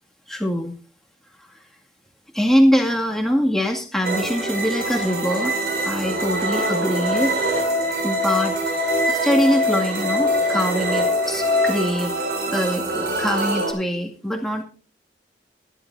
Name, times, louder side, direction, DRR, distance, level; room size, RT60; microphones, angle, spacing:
voice 1, 0.3-0.7 1.4-1.5 2.3-5.5 5.8-7.4 7.7-8.6 9.1-12.2 12.5-14.6, equal, ahead, 1 dB, 2.2 m, -23 dB
sound 1, 4.0-13.7, right 2 dB, 60° right, 6.1 m, -25 dB
Musical instrument, 6.0-11.7, left 4 dB, 45° left, 1.8 m, -24 dB
23.0 x 11.5 x 2.7 m, 0.35 s
head